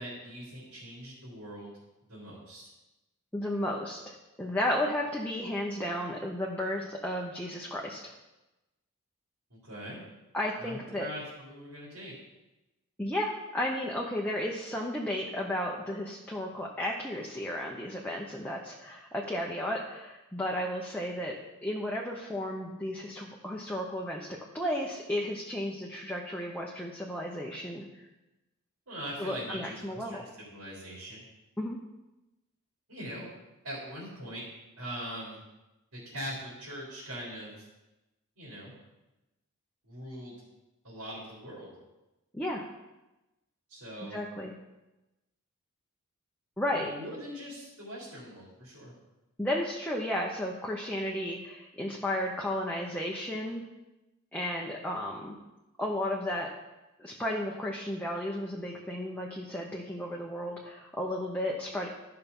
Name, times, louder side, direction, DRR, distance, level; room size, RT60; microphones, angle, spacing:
voice 1, 0.0-1.7 2.1-2.7 9.5-10.0 10.6-12.1 28.9-31.3 32.9-33.3 33.6-34.4 34.8-35.4 35.9-37.7 38.4-38.7 39.9-40.4 40.8-41.7 43.7-44.2 46.7-48.9, equal, 90° right, -7 dB, 3.7 m, -42 dB
voice 2, 3.3-8.0 10.3-11.1 13.0-21.4 21.6-28.0 29.2-30.2 31.6-31.8 42.3-42.7 44.0-44.5 46.6-46.9 49.4-53.6 54.3-55.4 55.8-56.5 57.0-61.9, left 1 dB, 5° left, -2 dB, 0.8 m, -33 dB
12.0 x 5.8 x 5.4 m, 1.0 s
head